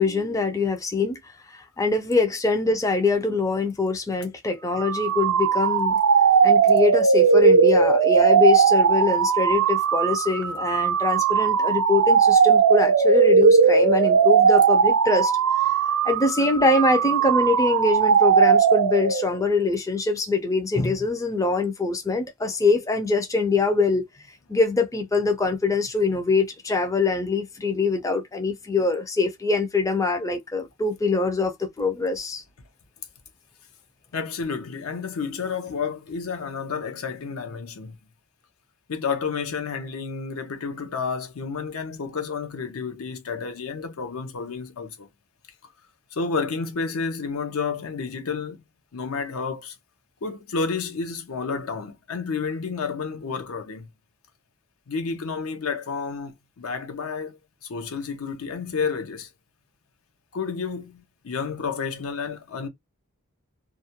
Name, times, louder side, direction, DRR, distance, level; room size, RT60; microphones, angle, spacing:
voice 1, 0.0-6.0 6.4-15.3 16.0-24.1 24.5-32.4, left 3 dB, 15° left, 0.4 m, -23 dB
sound 1, 4.7-19.4, right 6 dB, 80° right, 0.4 m, -18 dB
voice 2, 34.1-38.0 38.9-45.1 46.1-48.6 48.9-49.8 50.2-53.9 54.9-59.3 60.3-62.7, left 5 dB, 75° left, 0.6 m, -30 dB
2.3 x 2.1 x 2.7 m
head